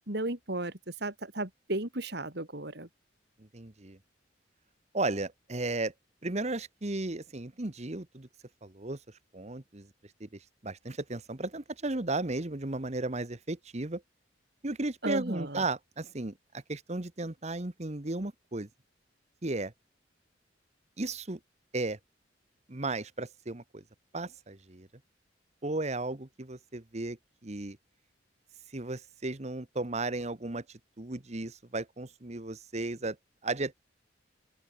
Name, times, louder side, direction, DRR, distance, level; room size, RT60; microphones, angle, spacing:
voice 1, 0.1-2.9 15.0-15.7, right 1 dB, 60° right, 3.6 m, -34 dB
voice 2, 3.4-4.0 4.9-5.9 6.2-8.3 8.6-9.0 9.3-9.9 10.2-10.3 10.6-14.0 14.6-18.7 19.4-19.7 21.0-21.4 21.7-22.0 22.7-23.8 24.1-24.9 25.6-27.2 27.4-27.8 28.7-30.6 31.0-33.2 33.4-33.7, right 2 dB, 35° right, 1.2 m, -35 dB
open air
head